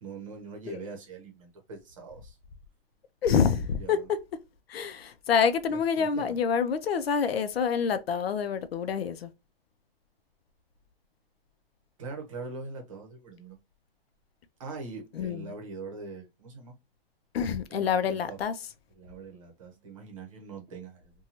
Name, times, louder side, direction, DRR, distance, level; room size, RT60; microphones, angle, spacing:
voice 1, 0.0-2.4 3.5-4.1 5.7-6.4 12.0-13.6 14.6-16.8 17.7-18.4 18.9-21.1, right 4 dB, 35° right, 0.8 m, -42 dB
voice 2, 3.2-4.0 4.7-9.3 15.2-15.4 17.3-18.5, left 6 dB, 80° left, 0.6 m, -27 dB
2.7 x 2.3 x 2.8 m
hypercardioid pair, 175°, 30 cm